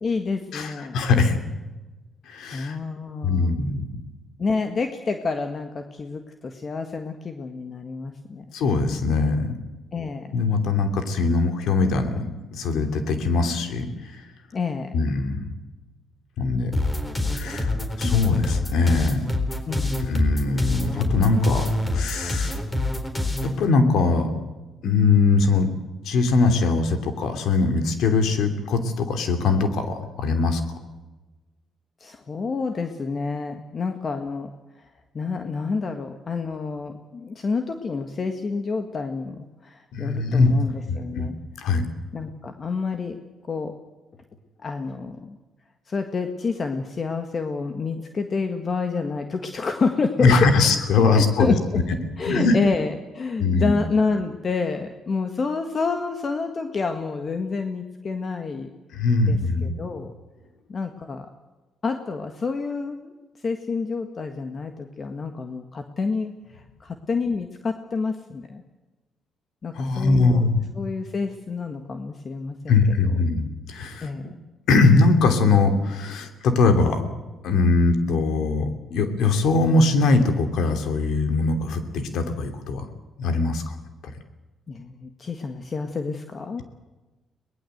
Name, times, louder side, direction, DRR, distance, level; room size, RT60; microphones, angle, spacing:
voice 1, 0.0-1.0 2.5-3.6 4.4-8.4 9.9-10.4 14.5-14.9 19.7-20.2 32.0-34.5 35.1-41.4 42.1-43.2 43.5-43.7 44.6-45.4 45.9-50.5 51.1-51.8 52.2-58.7 59.3-60.1 60.7-61.3 61.8-63.1 63.4-68.6 69.6-70.4 70.8-72.8 74.0-74.4 84.7-86.6, left 4 dB, 40° left, 6 dB, 1.7 m, -28 dB
voice 2, 0.5-1.4 2.3-2.8 3.2-3.8 8.5-9.5 10.3-14.2 14.9-15.4 16.4-16.7 17.3-19.3 20.0-22.6 23.4-24.3 24.8-25.7 26.0-30.6 39.9-40.5 40.9-41.3 41.6-41.8 50.2-51.8 52.2-52.6 53.4-53.7 58.9-59.7 69.7-70.6 72.7-74.3 74.7-77.0 77.4-82.8 83.2-83.8 84.0-84.1, left 3 dB, 80° left, 7 dB, 3.0 m, -21 dB
sound 1, 16.7-23.5, left 2 dB, 20° left, 3.9 m, -26 dB
22.5 x 19.5 x 8.1 m, 1.2 s
cardioid pair, 90°, 0 cm